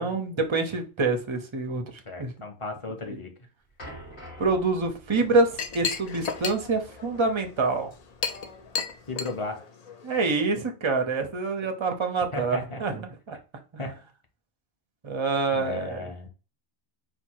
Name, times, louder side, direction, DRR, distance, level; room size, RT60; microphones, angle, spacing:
voice 1, 0.0-1.8 2.2-2.3 4.4-7.9 10.0-13.4 15.0-16.0, right 3 dB, 35° right, 0.5 m, -26 dB
voice 2, 2.0-3.3 9.1-9.6 12.3-12.9 13.8-13.9 15.5-16.3, left 2 dB, 30° left, 0.8 m, -35 dB
sound 1, 3.8-9.2, equal, 50° left, 2.8 m, -48 dB
Chink clink, 5.1-10.4, left 5 dB, 75° left, 0.3 m, -35 dB
4.4 x 2.2 x 4.5 m
omnidirectional pair, 1.3 m